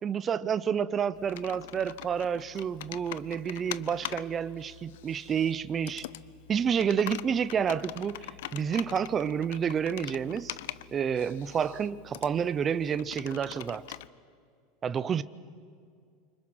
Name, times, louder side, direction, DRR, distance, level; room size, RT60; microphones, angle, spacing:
voice 1, 0.0-6.1 6.5-10.6 10.9-13.8 14.8-15.2, right 7 dB, 20° right, 0.5 m, -29 dB
Computer keyboard, 1.1-14.1, left 14 dB, 75° left, 0.7 m, -43 dB
29.0 x 25.5 x 6.3 m
supercardioid pair, 180°, 0 cm